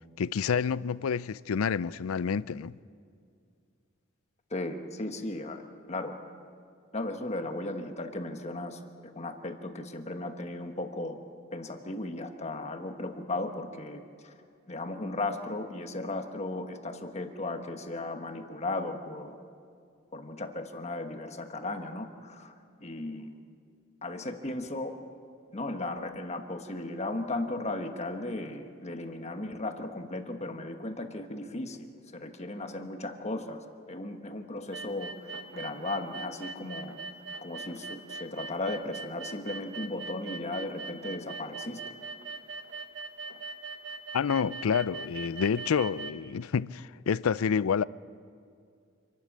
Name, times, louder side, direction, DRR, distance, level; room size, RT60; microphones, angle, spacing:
voice 1, 0.2-2.8 44.1-47.8, left 6 dB, 90° left, 0.4 m, -28 dB
voice 2, 4.5-5.6 5.9-6.1 6.9-11.2 11.5-14.3 14.7-19.4 20.1-22.5 22.8-23.4 24.0-24.9 25.5-31.9 32.1-37.0 37.4-41.8, left 2 dB, 30° left, 1.3 m, -36 dB
sound 1, 34.7-46.1, right 3 dB, 60° right, 1.2 m, -41 dB
26.5 x 12.5 x 8.6 m
head